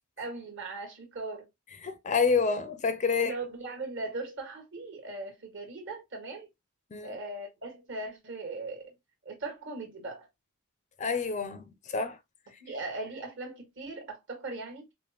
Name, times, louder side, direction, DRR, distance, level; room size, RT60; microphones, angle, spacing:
voice 1, 0.2-1.5 3.1-6.5 7.0-8.9 9.2-10.3 12.6-14.9, right 2 dB, 55° right, 1.5 m, -39 dB
voice 2, 1.8-3.3 6.9-7.1 11.0-12.2, left 5 dB, 35° left, 0.4 m, -28 dB
4.8 x 2.1 x 2.8 m
head